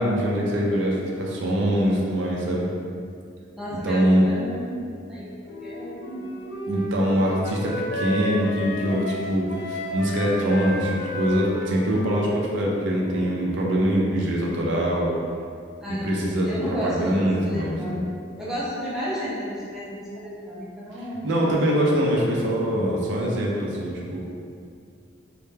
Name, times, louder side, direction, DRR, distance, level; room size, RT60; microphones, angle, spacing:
voice 1, 0.0-2.7 3.8-4.3 6.7-15.1 15.9-18.0 21.2-24.2, equal, 65° right, -3 dB, 0.4 m, -23 dB
voice 2, 3.5-6.3 7.0-7.4 15.8-18.1 18.4-21.4, equal, ahead, -10 dB, 0.5 m, -32 dB
Wind instrument woodwind instrument, 5.5-13.5, equal, 55° left, 0.4 m, -32 dB
2.1 x 2.1 x 3.1 m, 2.3 s
head